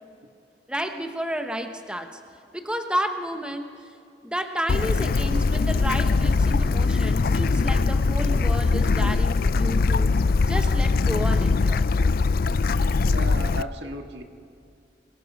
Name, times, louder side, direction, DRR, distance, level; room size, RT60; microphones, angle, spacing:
voice 1, 0.7-2.2 2.5-3.8 4.2-10.1 10.5-11.9, equal, 5° right, 5 dB, 1.1 m, -31 dB
Bird / Stream, 4.7-13.6, left 4 dB, 55° left, 0.4 m, -21 dB
voice 2, 13.0-14.2, equal, 80° right, 4 dB, 1.8 m, -35 dB
28.5 x 22.0 x 5.3 m, 2.4 s
head